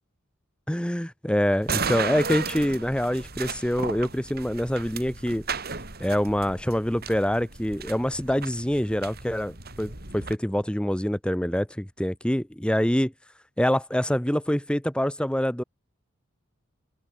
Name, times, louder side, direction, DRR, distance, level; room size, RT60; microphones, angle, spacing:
voice 1, 0.7-5.4 6.0-13.1 13.6-15.6, equal, 5° left, 1.2 m, -25 dB
sound 1, 1.6-10.4, right 5 dB, 50° right, 5.8 m, -35 dB
head